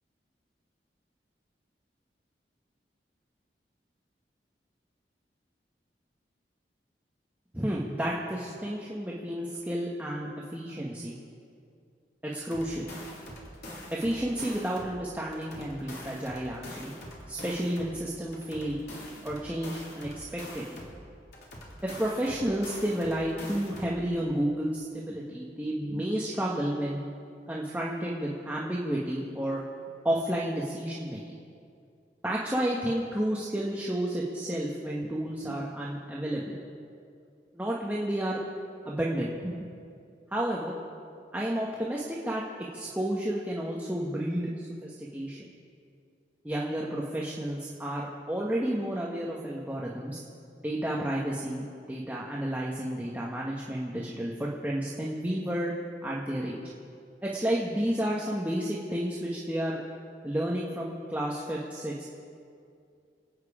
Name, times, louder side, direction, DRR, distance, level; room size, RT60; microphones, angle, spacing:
voice 1, 7.5-11.2 12.2-12.9 13.9-16.9 17.3-18.8 19.2-20.8 21.8-27.0 27.5-29.6 30.0-31.4 32.2-36.6 37.5-38.4 38.8-39.7 40.3-40.7 41.3-45.4 46.4-50.2 50.6-55.7 56.0-56.6 57.2-59.8 60.2-62.0, right 1 dB, 10° right, -4 dB, 1.3 m, -31 dB
sound 1, 12.3-15.0 15.3-18.0 18.3-21.0 21.3-24.0, left 1 dB, 65° left, 3.6 m, -44 dB
28.0 x 9.4 x 5.0 m, 2.4 s
head